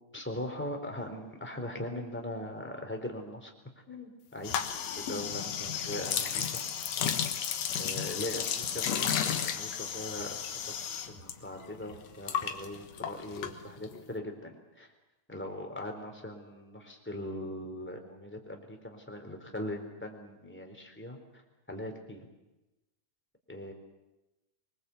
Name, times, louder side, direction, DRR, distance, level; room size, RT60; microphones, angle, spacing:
voice 1, 0.1-3.5 3.9-4.6 5.0-6.6 7.8-10.6 11.1-14.9 15.3-21.2 21.7-22.3 23.5-23.7, left 1 dB, 5° left, 3 dB, 3.3 m, -40 dB
sound 1, 4.4-11.3 11.6-14.0, left 8 dB, 65° left, 2.5 m, -33 dB
23.5 x 21.5 x 8.3 m, 1.0 s
omnidirectional pair, 3.3 m